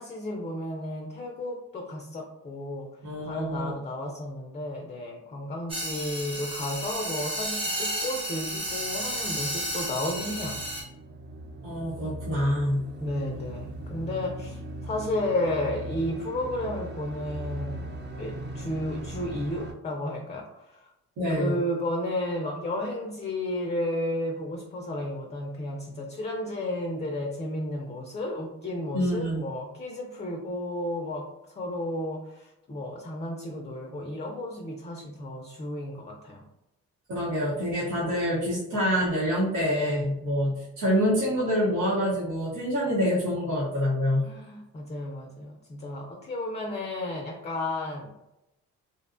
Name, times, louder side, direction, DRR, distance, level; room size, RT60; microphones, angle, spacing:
voice 1, 0.0-2.9 3.2-10.6 13.0-20.9 21.3-36.4 44.2-48.1, left 1 dB, 25° left, 1 dB, 0.4 m, -33 dB
voice 2, 3.0-3.8 11.6-12.8 21.2-21.6 28.9-29.4 37.1-44.3, equal, 85° right, -8 dB, 0.9 m, -26 dB
sound 1, 5.7-10.8, equal, 20° right, 0.9 m, -32 dB
sound 2, 8.7-19.7, right 1 dB, 35° right, 0.4 m, -40 dB
2.6 x 2.2 x 2.4 m, 0.90 s
cardioid pair, 90°, 30 cm